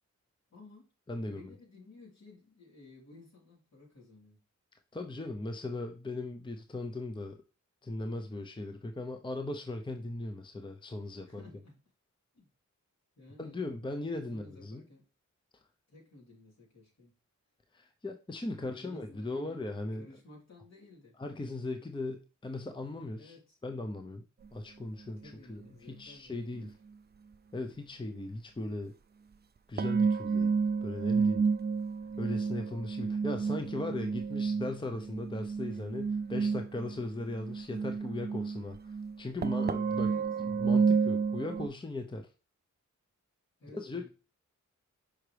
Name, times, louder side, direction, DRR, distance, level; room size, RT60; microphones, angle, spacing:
voice 1, 0.5-0.9 1.2-4.4 11.3-11.8 12.3-12.5 13.2-13.6 14.3-15.0 15.9-17.1 18.6-19.6 20.0-21.1 23.0-23.6 25.2-26.7 39.9-40.3 43.6-44.1, left 2 dB, 60° left, -3 dB, 3.7 m, -55 dB
voice 2, 1.1-1.5 4.9-7.4 7.8-11.4 13.4-14.8 17.7-20.1 21.2-23.4 23.6-24.2 24.5-25.2 25.5-26.8 27.5-28.9 29.7-30.5 30.8-31.5 32.2-40.1 40.4-42.3 43.7-44.1, left 2 dB, 15° left, 5 dB, 0.7 m, -38 dB
sound 1, 24.4-24.5 26.6-26.7 29.8-41.7, right 5 dB, 35° right, 0.4 m, -31 dB
5.8 x 5.0 x 3.3 m, 0.33 s
cardioid pair, 70°, 31 cm